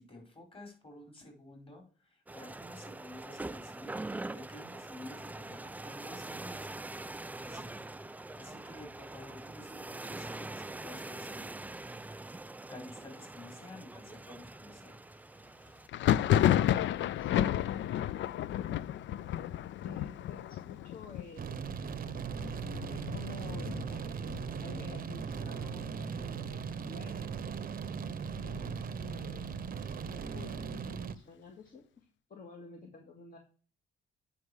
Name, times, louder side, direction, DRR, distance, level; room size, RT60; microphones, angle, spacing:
voice 1, 0.0-6.7 7.4-7.8 8.4-11.5 12.7-15.0, left 2 dB, 25° left, 1 dB, 4.9 m, -51 dB
sound 1, 2.3-15.9, right 2 dB, 10° right, 0.3 m, -43 dB
Thunder, 15.9-25.4 25.7-26.3 26.6-27.6 28.0-29.7, left 11 dB, 70° left, 0.5 m, -32 dB
voice 2, 16.9-18.0 19.8-21.7 22.9-27.3 28.4-29.5 30.0-33.4, left 5 dB, 45° left, 2 dB, 2.0 m, -50 dB
sound 2, 21.4-31.2, right 6 dB, 45° right, 0.7 m, -38 dB
9.5 x 5.6 x 4.9 m, 0.39 s
cardioid pair, 90°, 20 cm